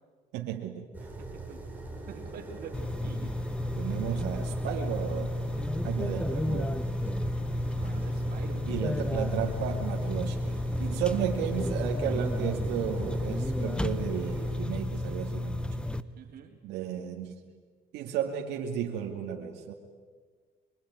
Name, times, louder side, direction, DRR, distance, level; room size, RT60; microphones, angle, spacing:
voice 1, 0.3-0.9 3.7-5.3 5.8-6.8 8.7-15.7 16.6-17.3 17.9-19.7, right 9 dB, 90° right, 1 dB, 2.5 m, -33 dB
sound 1, 0.9-14.5, right 2 dB, 10° right, 6.7 m, -41 dB
voice 2, 1.2-1.6 2.1-3.3 7.8-9.0 11.0-11.2 16.2-16.6, right 7 dB, 60° right, -5 dB, 4.0 m, -46 dB
sound 2, 2.7-16.0, left 1 dB, 5° left, 1.1 m, -32 dB
24.5 x 24.0 x 9.6 m, 1.5 s
cardioid pair, 110°, 17 cm